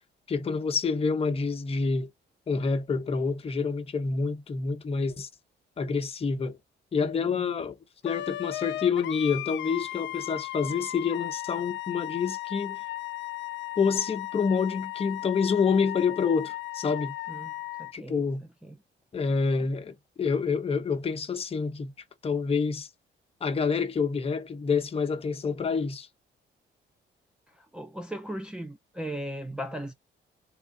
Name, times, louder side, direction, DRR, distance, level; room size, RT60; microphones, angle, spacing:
voice 1, 0.3-2.1 2.5-5.3 5.8-6.6 6.9-7.7 8.0-12.8 13.8-17.1 17.9-18.4 19.1-21.9 22.2-22.9 23.4-26.1, left 5 dB, 30° left, 0.9 m, -27 dB
voice 2, 7.0-7.4 17.3-17.5 17.8-18.2 18.6-18.8 27.6-29.9, right 1 dB, 5° right, 0.5 m, -37 dB
Wind instrument woodwind instrument, 8.0-17.9, left 16 dB, 70° left, 0.4 m, -36 dB
3.6 x 2.7 x 3.9 m
cardioid pair, 125°, 20 cm